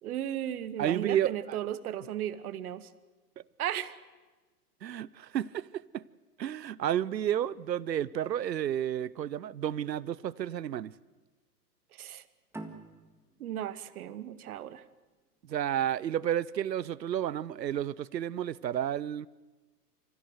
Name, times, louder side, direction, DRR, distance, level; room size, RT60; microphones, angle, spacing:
voice 1, 0.0-2.9 3.6-3.9 11.9-12.2 13.4-14.8, right 11 dB, 60° right, 1.3 m, -35 dB
voice 2, 0.8-1.6 4.8-6.0 6.4-10.9 15.5-19.3, right 10 dB, 85° right, 0.7 m, -31 dB
sound 1, 12.5-15.7, right 2 dB, 5° right, 1.7 m, -48 dB
26.5 x 14.5 x 8.0 m
hypercardioid pair, 115°, 49 cm